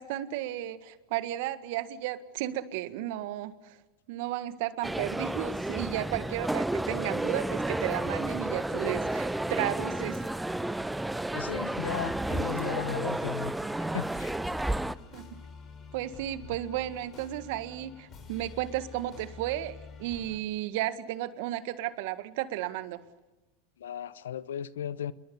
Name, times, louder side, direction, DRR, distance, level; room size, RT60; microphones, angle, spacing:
voice 1, 0.0-3.7 4.1-10.2 15.1-15.3 15.9-23.0, right 13 dB, 65° right, 1.7 m, -34 dB
sound 1, 4.8-14.9, right 1 dB, 5° right, 0.8 m, -31 dB
voice 2, 11.3-13.6 13.9-14.3 16.4-16.6 23.8-25.1, left 10 dB, 80° left, 0.8 m, -36 dB
sound 2, 11.5-20.4, left 5 dB, 35° left, 6.5 m, -48 dB
27.0 x 22.5 x 6.9 m
hypercardioid pair, 95°, 0 cm